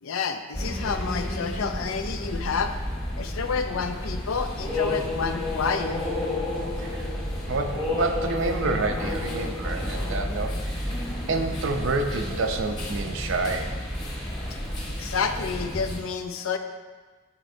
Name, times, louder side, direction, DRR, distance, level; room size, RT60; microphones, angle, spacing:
voice 1, 0.0-2.7 3.2-6.0 9.0-9.1 9.4-10.5 14.5-14.6 15.0-16.6, left 5 dB, 85° left, 8 dB, 0.5 m, -30 dB
sound 1, 0.5-16.0, left 1 dB, 20° left, 1.1 m, -31 dB
voice 2, 6.8-7.1 7.5-10.9 11.3-13.8, right 3 dB, 70° right, 5 dB, 0.5 m, -28 dB
11.0 x 4.3 x 2.7 m, 1.4 s
head